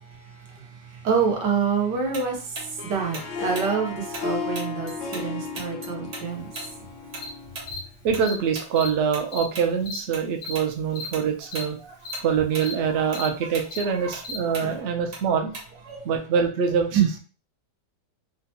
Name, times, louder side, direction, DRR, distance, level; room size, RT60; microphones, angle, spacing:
voice 1, 0.0-6.8 12.9-13.0 14.0-14.1 14.6-14.8 15.9-16.0 16.9-17.1, right 6 dB, 90° right, 1 dB, 1.5 m, -27 dB
Tick-tock, 2.1-5.3 5.5-10.3 10.5-10.7 11.1-11.7 12.0-16.0, right 2 dB, 45° right, 0.9 m, -39 dB
Harp, 2.6-7.8, left 5 dB, 90° left, 1.3 m, -34 dB
Cricket, 6.5-6.7 7.2-7.3 7.7-7.8 8.2-8.3 8.7-8.9 9.3-9.4 9.8-10.0 10.4-10.5 10.9-11.1 11.5-11.6 12.0-12.2 12.6-12.7 13.1-13.3 13.7-13.8 14.2-14.4, left 3 dB, 70° left, 0.5 m, -35 dB
voice 2, 8.0-11.8 12.2-15.5 16.0-17.2, right 6 dB, 70° right, 4 dB, 0.6 m, -24 dB
3.8 x 2.2 x 2.8 m, 0.37 s
omnidirectional pair, 1.8 m